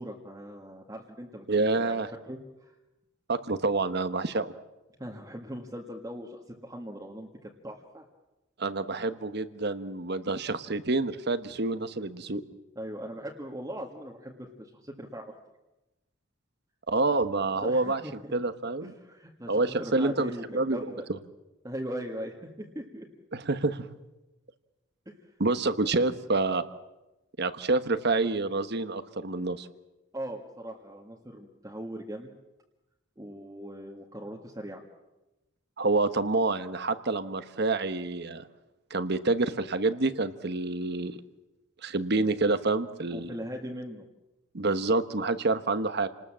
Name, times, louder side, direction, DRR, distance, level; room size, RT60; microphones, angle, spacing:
voice 1, 0.0-2.0 2.3-2.7 5.0-8.1 12.8-15.3 17.6-18.3 18.8-21.0 21.6-23.1 25.1-25.2 30.1-32.3 33.2-34.8 43.1-44.1, equal, 15° right, -1 dB, 1.8 m, -40 dB
voice 2, 1.5-2.1 3.3-4.5 8.6-12.4 16.9-18.9 19.5-20.8 23.3-23.9 25.4-26.7 27.4-29.7 35.8-38.5 38.9-41.2 41.8-43.3 44.5-46.1, right 3 dB, 55° right, 11 dB, 1.2 m, -27 dB
29.0 x 19.5 x 7.5 m, 1.0 s
head